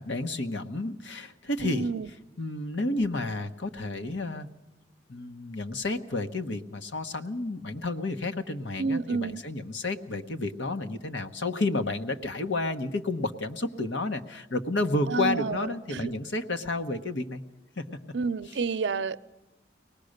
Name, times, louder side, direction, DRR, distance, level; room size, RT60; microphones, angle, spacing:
voice 1, 0.0-1.9 2.4-4.5 5.1-17.4 17.8-17.9, left 2 dB, 85° left, 1.2 m, -31 dB
voice 2, 1.6-2.1 8.8-9.4 15.1-16.1 18.1-19.2, right 4 dB, 70° right, 0.6 m, -29 dB
23.5 x 18.5 x 6.6 m
head